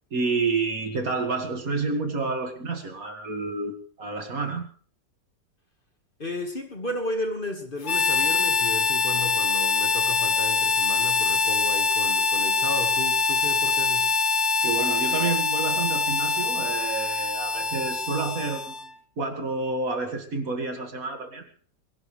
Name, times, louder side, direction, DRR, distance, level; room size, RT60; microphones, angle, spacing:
voice 1, 0.1-4.7 9.2-9.3 14.6-18.9 19.2-21.5, right 3 dB, 50° right, 5 dB, 2.3 m, -29 dB
voice 2, 6.2-14.1, left 1 dB, 30° left, 4 dB, 1.8 m, -34 dB
Harmonica, 7.8-18.9, left 4 dB, 50° left, 0.5 m, -24 dB
22.5 x 17.0 x 3.3 m, 0.44 s
omnidirectional pair, 1.9 m